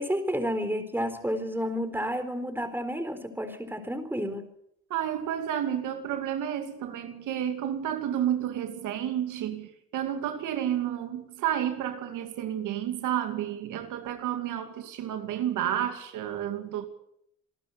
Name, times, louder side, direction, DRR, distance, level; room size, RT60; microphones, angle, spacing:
voice 1, 0.0-4.4, equal, 5° right, 4.2 m, -30 dB
voice 2, 4.9-16.9, right 10 dB, 90° right, 2.6 m, -31 dB
27.0 x 12.0 x 8.7 m
cardioid pair, 90°, 30 cm